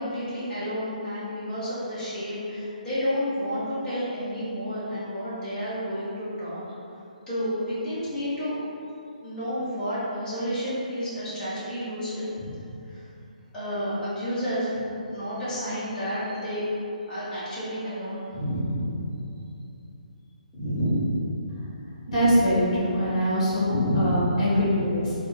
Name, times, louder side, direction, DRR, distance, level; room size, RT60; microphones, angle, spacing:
voice 1, 0.0-6.7 7.3-8.5 9.2-12.5 12.9-13.0 13.5-16.6 17.1-19.0 20.5-21.1 23.7-24.3, equal, 15° left, -13 dB, 1.4 m, -30 dB
voice 2, 22.1-25.1, equal, 45° left, -8 dB, 1.4 m, -23 dB
3.5 x 2.3 x 4.3 m, 2.7 s
figure-of-eight pair, 135°, 5 cm